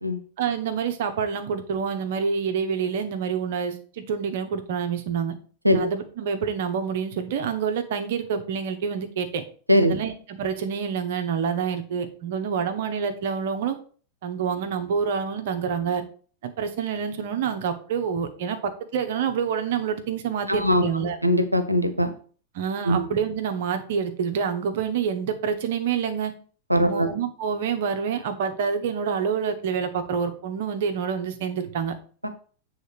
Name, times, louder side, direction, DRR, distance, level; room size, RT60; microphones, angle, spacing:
voice 1, 0.4-5.3 5.7-9.4 9.8-13.8 14.2-16.0 16.4-21.2 22.5-26.3 26.8-31.9, right 6 dB, 55° right, 7 dB, 0.9 m, -27 dB
voice 2, 20.5-20.8 21.2-22.1 22.8-23.1 26.7-27.1 32.2-32.3, equal, 85° right, 9 dB, 0.9 m, -20 dB
7.9 x 3.6 x 5.0 m, 0.42 s
figure-of-eight pair, 90°, 0 cm